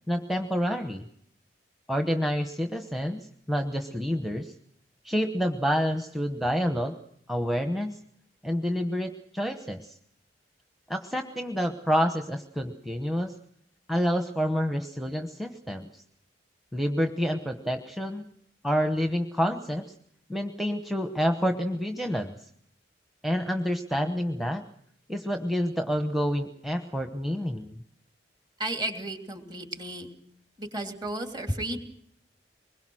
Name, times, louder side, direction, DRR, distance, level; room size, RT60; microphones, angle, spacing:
voice 1, 0.1-1.0 1.9-4.5 5.0-6.9 7.3-7.9 8.4-9.9 10.9-13.3 13.9-16.0 16.7-18.2 18.6-19.8 20.3-22.3 23.2-24.6 25.1-27.8, equal, ahead, 5 dB, 1.1 m, -28 dB
voice 2, 28.6-30.1 30.6-31.8, right 1 dB, 25° right, 5 dB, 2.9 m, -33 dB
24.0 x 21.5 x 6.3 m, 0.67 s
head